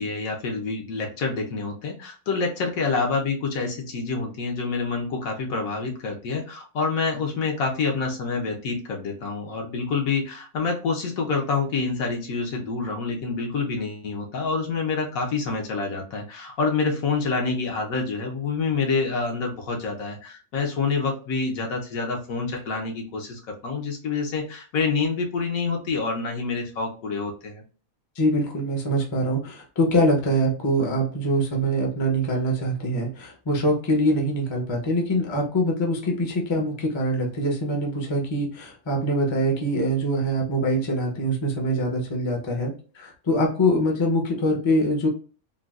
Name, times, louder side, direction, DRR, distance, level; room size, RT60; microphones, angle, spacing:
voice 1, 0.0-27.6, left 4 dB, 70° left, 1 dB, 1.2 m, -27 dB
voice 2, 28.2-45.1, equal, 30° left, 1 dB, 0.5 m, -24 dB
3.8 x 2.3 x 2.3 m, 0.38 s
omnidirectional pair, 1.5 m